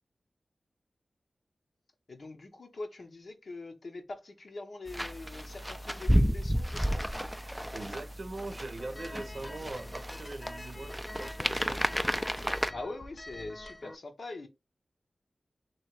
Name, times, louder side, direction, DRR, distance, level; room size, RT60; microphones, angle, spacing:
voice 1, 2.1-7.0 12.7-14.5, left 2 dB, 70° left, 0.8 m, -43 dB
sound 1, 4.9-12.7, equal, ahead, 0.4 m, -32 dB
voice 2, 7.4-11.8, right 2 dB, 65° right, 0.7 m, -42 dB
sound 2, 8.8-13.9, left 2 dB, 40° left, 0.8 m, -46 dB
3.0 x 2.9 x 4.4 m
cardioid pair, 50°, 0 cm